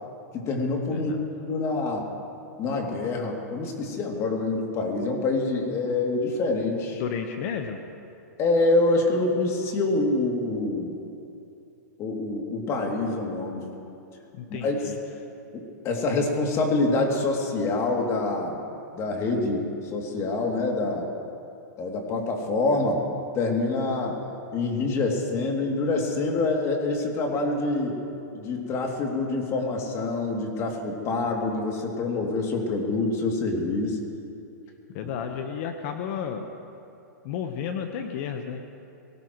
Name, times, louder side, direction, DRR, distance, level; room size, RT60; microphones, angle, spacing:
voice 1, 0.3-1.1 1.5-2.0 2.6-7.0 8.4-10.9 12.0-13.7 14.5-14.7 15.5-18.6 18.9-21.1 21.8-23.0 23.3-24.2 24.5-28.0 28.3-34.0, left 2 dB, 30° left, 0 dB, 2.8 m, -26 dB
voice 2, 0.9-1.6 6.9-7.8 14.3-15.0 34.9-36.5 37.2-38.6, left 7 dB, 50° left, 5 dB, 1.2 m, -32 dB
23.0 x 18.5 x 3.2 m, 2.7 s
hypercardioid pair, 135°, 10 cm